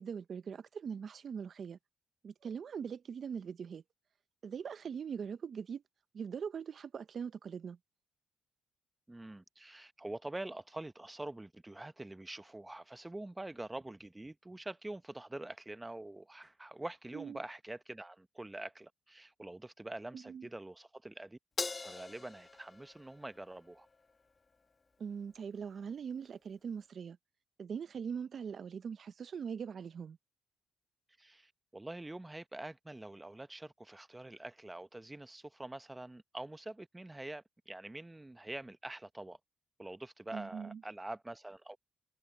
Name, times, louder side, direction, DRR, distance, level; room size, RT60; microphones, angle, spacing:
voice 1, 0.0-1.8 2.2-3.8 4.4-5.8 6.1-7.8 17.1-17.4 20.1-20.5 25.0-27.2 27.6-30.2 40.3-40.8, right 7 dB, 50° right, 0.5 m, -41 dB
voice 2, 9.1-21.4 21.8-23.9 31.2-39.4 39.8-41.8, right 2 dB, 15° right, 0.7 m, -45 dB
Crash cymbal, 21.6-24.1, left 4 dB, 30° left, 1.3 m, -42 dB
cardioid pair, 90°, 0 cm